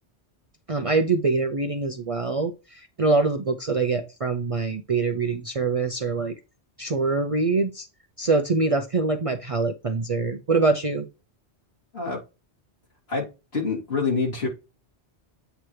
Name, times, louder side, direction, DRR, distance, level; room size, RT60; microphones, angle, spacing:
voice 1, 0.7-6.3 6.8-7.9 8.2-11.1, right 3 dB, 40° right, 0.5 m, -24 dB
voice 2, 13.5-14.5, left 4 dB, 65° left, 2.8 m, -26 dB
7.9 x 3.0 x 4.7 m
omnidirectional pair, 1.1 m